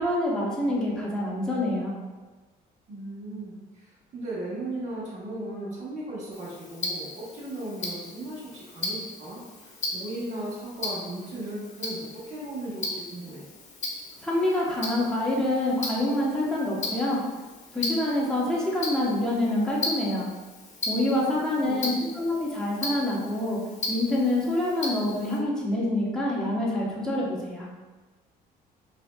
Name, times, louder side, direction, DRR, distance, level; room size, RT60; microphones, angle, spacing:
voice 1, 0.0-1.9 14.2-17.2 17.7-20.3 20.9-23.6 23.9-27.7, left 1 dB, 5° left, -6 dB, 1.0 m, -26 dB
voice 2, 2.9-13.4 21.6-22.0, right 1 dB, 45° right, -8 dB, 1.4 m, -37 dB
Tick-tock, 6.3-25.4, left 2 dB, 45° left, 0.9 m, -37 dB
5.0 x 2.8 x 2.3 m, 1.3 s
cardioid pair, 110°, 17 cm